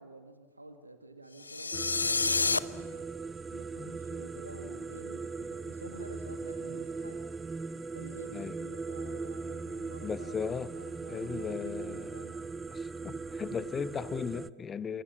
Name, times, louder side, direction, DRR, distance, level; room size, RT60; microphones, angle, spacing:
voice 1, 0.0-3.1 3.5-7.2 7.7-12.4, right 2 dB, 80° right, 1.9 m, -50 dB
sound 1, 1.4-2.6, left 4 dB, 80° left, 0.9 m, -28 dB
sound 2, 1.7-14.5, right 4 dB, 10° right, 0.6 m, -39 dB
voice 2, 10.0-10.7 11.1-12.2 12.7-15.0, left 6 dB, 20° left, 1.1 m, -37 dB
28.5 x 26.0 x 5.9 m
figure-of-eight pair, 90°, 0 cm